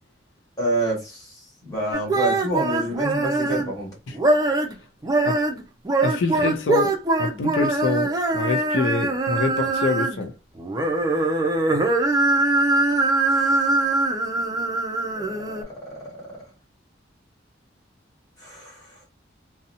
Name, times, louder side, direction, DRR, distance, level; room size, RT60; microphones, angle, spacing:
voice 1, 0.6-1.3 1.6-3.9 13.3-13.7 15.2-16.1 18.4-18.9, right 1 dB, 20° left, 1.3 m, -28 dB
sound 1, 1.9-3.7 4.1-4.7 5.0-10.2 10.6-15.6, right 2 dB, 20° right, 0.3 m, -22 dB
voice 2, 6.0-6.9 7.2-10.3, left 3 dB, 85° left, 0.4 m, -25 dB
2.6 x 2.0 x 2.7 m
head